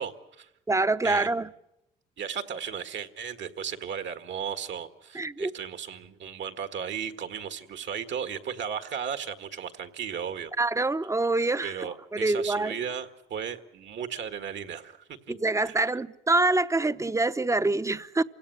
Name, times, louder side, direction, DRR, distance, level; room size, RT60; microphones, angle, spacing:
voice 1, 0.0-0.5 1.0-1.3 2.2-10.5 11.6-15.2 15.6-15.8, right 7 dB, 65° right, 1.8 m, -35 dB
voice 2, 0.7-1.5 5.1-5.5 10.6-12.8 15.3-18.2, right 2 dB, 15° right, 0.8 m, -26 dB
27.5 x 17.5 x 9.6 m
cardioid pair, 90°, 20 cm